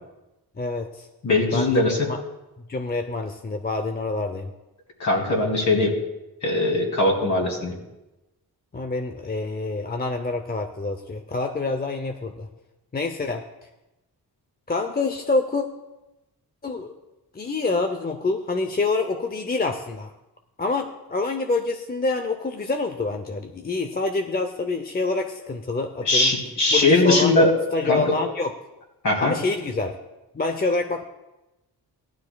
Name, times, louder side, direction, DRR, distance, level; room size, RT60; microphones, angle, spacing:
voice 1, 0.6-1.1 1.5-2.2 2.7-4.5 8.7-12.5 12.9-13.4 14.7-15.6 16.6-16.9 17.3-20.1 20.6-26.3 26.7-27.4 27.7-28.5 29.2-30.0 30.3-31.0, left 3 dB, 25° left, 6 dB, 0.5 m, -26 dB
voice 2, 1.2-2.1 5.0-5.9 6.4-7.7 26.0-27.5 27.8-28.1 29.0-29.3, left 2 dB, 45° left, 0 dB, 2.5 m, -20 dB
18.0 x 12.0 x 2.3 m, 0.99 s
wide cardioid pair, 155°, 39 cm